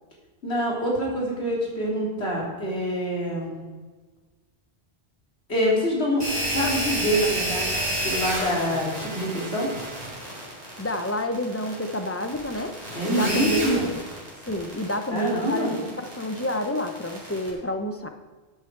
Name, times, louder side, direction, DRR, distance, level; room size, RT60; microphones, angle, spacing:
voice 1, 0.4-3.5 5.5-9.7 13.0-13.9 15.1-15.7, equal, 75° left, -3 dB, 3.6 m, -26 dB
sound 1, 6.2-17.5, equal, 40° right, 4.1 m, -30 dB
voice 2, 10.8-12.7 13.0-13.9 14.5-18.1, left 1 dB, 15° left, 6 dB, 0.8 m, -29 dB
13.5 x 8.3 x 4.7 m, 1.3 s
omnidirectional pair, 1.1 m